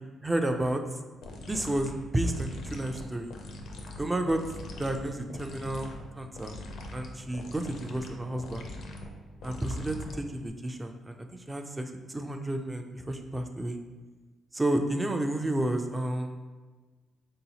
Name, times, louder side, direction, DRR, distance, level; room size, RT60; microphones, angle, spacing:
voice 1, 0.2-1.0 1.5-3.3 4.0-4.4 4.8-5.9 6.2-6.6 6.9-8.7 9.4-11.2 11.5-13.8 14.5-16.3, right 1 dB, 15° right, 5 dB, 0.4 m, -31 dB
sound 1, 1.2-10.5, left 1 dB, 75° left, 0.5 m, -43 dB
3.9 x 2.7 x 2.8 m, 1.3 s
cardioid pair, 90°, 0 cm